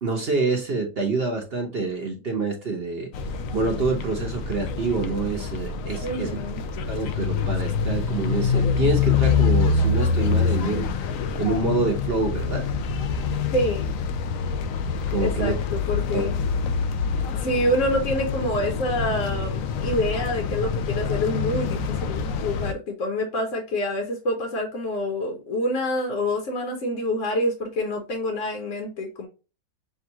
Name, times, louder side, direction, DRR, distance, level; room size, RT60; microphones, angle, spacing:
voice 1, 0.0-3.1 3.5-6.4 6.9-10.9 11.4-12.6 15.1-15.5 16.1-16.2, right 3 dB, 40° right, 0.9 m, -26 dB
sound 1, 3.1-22.7, left 5 dB, 90° left, 0.7 m, -26 dB
voice 2, 6.0-6.6 13.5-13.9 15.2-16.4 17.3-29.3, left 1 dB, 50° left, 1.1 m, -27 dB
6.1 x 2.4 x 2.8 m
omnidirectional pair, 2.0 m